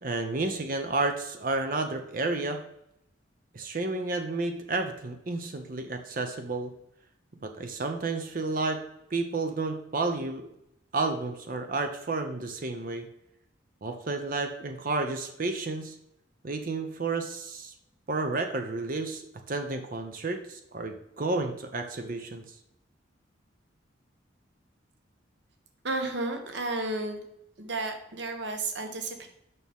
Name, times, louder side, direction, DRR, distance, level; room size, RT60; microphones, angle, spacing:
voice 1, 0.0-2.6 3.5-6.7 7.4-8.8 9.1-10.5 10.9-13.1 13.8-15.9 16.4-17.7 18.1-22.4, right 3 dB, 45° right, 6 dB, 0.6 m, -31 dB
voice 2, 25.8-27.2 27.6-29.3, right 2 dB, 65° right, 5 dB, 1.1 m, -32 dB
6.7 x 6.0 x 3.5 m, 0.79 s
head